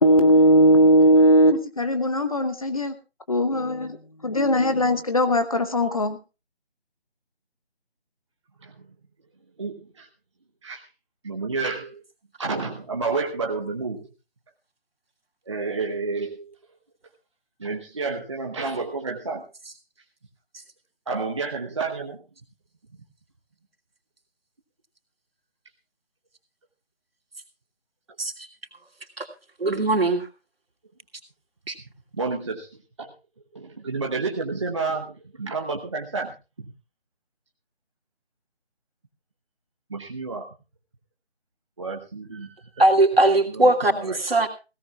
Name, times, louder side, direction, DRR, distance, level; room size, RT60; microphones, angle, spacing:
voice 1, 0.0-2.9 3.3-4.0 4.2-6.2, equal, 35° left, 9 dB, 1.0 m, -19 dB
voice 2, 9.6-10.1 10.6-10.9 11.2-12.0 12.4-14.1 15.5-16.5 17.6-19.4 21.1-22.2 32.1-32.7 33.0-33.1 33.5-36.7 39.9-40.5 41.8-42.8 43.5-44.2, right 4 dB, 30° right, 1 dB, 1.0 m, -30 dB
voice 3, 29.6-30.3 31.7-31.8 42.8-44.5, right 2 dB, 65° right, 4 dB, 2.8 m, -20 dB
20.5 x 16.5 x 2.4 m, 0.30 s
figure-of-eight pair, 160°, 32 cm